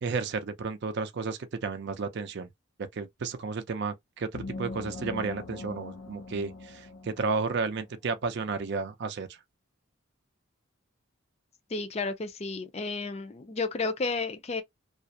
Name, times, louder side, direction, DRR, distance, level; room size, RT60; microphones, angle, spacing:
voice 1, 0.0-2.5 2.9-9.3, right 4 dB, 55° right, 0.4 m, -32 dB
sound 1, 4.3-7.9, left 3 dB, 80° left, 0.5 m, -41 dB
voice 2, 11.7-14.6, left 3 dB, 30° left, 0.4 m, -32 dB
2.4 x 2.0 x 2.6 m
head